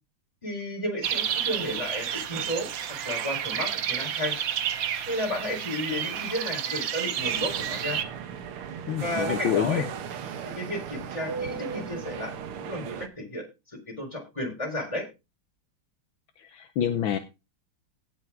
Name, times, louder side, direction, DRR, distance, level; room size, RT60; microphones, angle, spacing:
voice 1, 0.4-2.7 3.0-4.4 5.1-8.0 9.0-9.9 10.6-12.3 12.6-13.4 14.0-15.0, left 1 dB, 15° left, 0 dB, 4.3 m, -32 dB
sound 1, 1.0-8.0, right 9 dB, 70° right, 1.6 m, -30 dB
sound 2, 7.2-13.1, right 7 dB, 90° right, 1.9 m, -36 dB
voice 2, 8.8-9.9 16.4-17.2, left 10 dB, 70° left, 8 dB, 1.6 m, -27 dB
17.0 x 6.2 x 3.7 m, 0.27 s
omnidirectional pair, 2.3 m